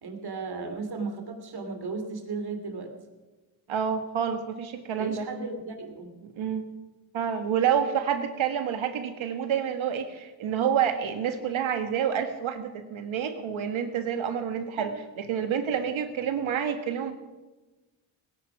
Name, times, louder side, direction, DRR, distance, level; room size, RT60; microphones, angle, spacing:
voice 1, 0.0-2.9 4.9-6.1 14.8-14.9, right 4 dB, 55° right, 6 dB, 3.0 m, -35 dB
voice 2, 3.7-5.3 6.2-6.6 7.1-17.1, right 8 dB, 80° right, 7 dB, 1.6 m, -28 dB
18.0 x 11.0 x 6.1 m, 1.2 s
cardioid pair, 75°, 47 cm